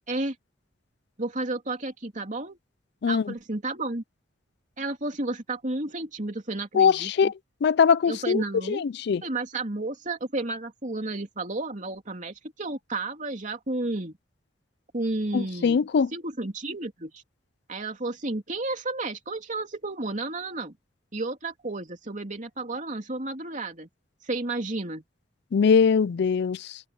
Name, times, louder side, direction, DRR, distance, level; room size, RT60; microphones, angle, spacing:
voice 1, 1.2-2.6 3.1-4.0 4.8-7.3 8.1-8.8 9.2-14.1 14.9-15.8 16.1-17.2 17.7-20.8 21.1-23.9 24.2-25.0, right 2 dB, 40° right, 3.0 m, -32 dB
voice 2, 3.0-3.3 6.7-7.3 7.6-8.4 8.7-9.2 15.3-16.1 25.5-26.8, left 6 dB, 60° left, 0.4 m, -22 dB
head